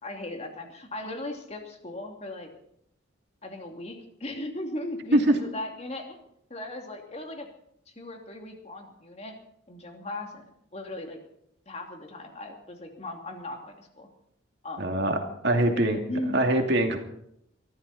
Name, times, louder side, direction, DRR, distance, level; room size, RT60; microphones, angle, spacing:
voice 1, 0.0-2.5 3.4-6.2 6.5-7.5 7.9-9.4 9.7-10.4 10.7-11.2 11.7-14.1 14.6-14.9 15.5-15.6 15.9-16.4, left 1 dB, 35° left, 2 dB, 2.8 m, -37 dB
voice 2, 14.8-15.2 15.4-16.0 16.3-17.0, right 1 dB, 60° right, 3 dB, 2.6 m, -22 dB
21.5 x 14.5 x 4.3 m, 0.73 s
head